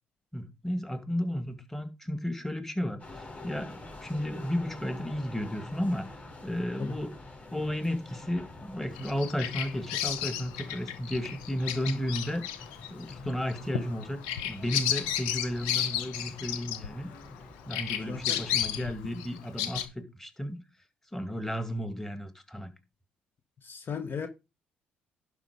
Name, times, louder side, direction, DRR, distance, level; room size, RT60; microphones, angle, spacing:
voice 1, 0.3-6.1 6.4-7.2 7.5-12.5 12.9-14.2 14.4-17.1 17.7-20.6 21.1-22.7, equal, 10° left, 2.2 m, -33 dB
sound 1, 3.0-18.8, left 2 dB, 30° left, 4.6 m, -47 dB
Bird vocalization bird call bird song, 8.9-17.4 17.7-19.8, left 11 dB, 85° left, 0.8 m, -33 dB
voice 2, 18.1-18.4 23.6-24.3, left 6 dB, 45° left, 1.1 m, -36 dB
11.0 x 4.9 x 5.1 m
hypercardioid pair, 55°, 5 cm